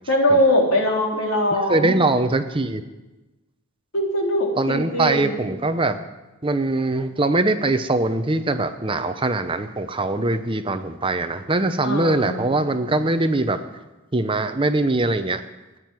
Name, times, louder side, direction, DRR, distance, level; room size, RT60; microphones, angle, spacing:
voice 1, 0.1-2.0 3.9-5.4 11.8-12.6, equal, 70° left, -1 dB, 3.8 m, -21 dB
voice 2, 1.7-2.8 4.6-6.0 6.4-13.6 14.1-15.4, right 2 dB, 25° right, 9 dB, 0.7 m, -22 dB
15.0 x 9.3 x 9.6 m, 1.1 s
head